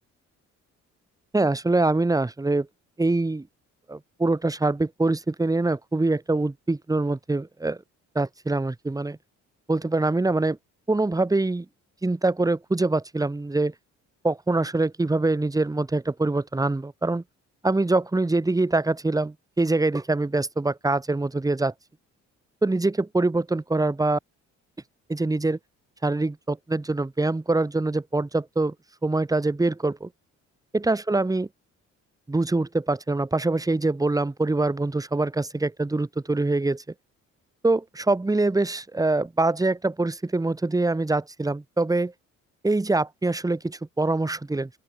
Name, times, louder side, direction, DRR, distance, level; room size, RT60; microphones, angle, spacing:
voice 1, 1.3-2.7 3.0-3.5 3.9-7.8 8.1-9.2 9.7-10.6 10.9-11.7 12.0-13.7 14.2-17.2 17.6-21.7 22.6-24.2 25.1-25.6 26.0-28.7 29.0-30.1 30.7-31.5 32.3-36.8 37.6-42.1 42.6-44.7, right 2 dB, 10° right, 1.2 m, -24 dB
open air
cardioid pair, 90°, 30 cm